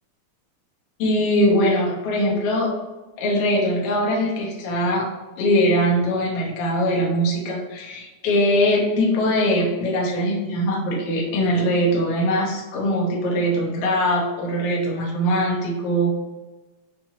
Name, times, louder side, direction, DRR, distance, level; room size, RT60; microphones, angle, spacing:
voice 1, 1.0-2.7 3.2-5.1 5.4-16.1, equal, 70° left, -2 dB, 1.5 m, -21 dB
5.7 x 2.6 x 2.8 m, 1.1 s
omnidirectional pair, 3.5 m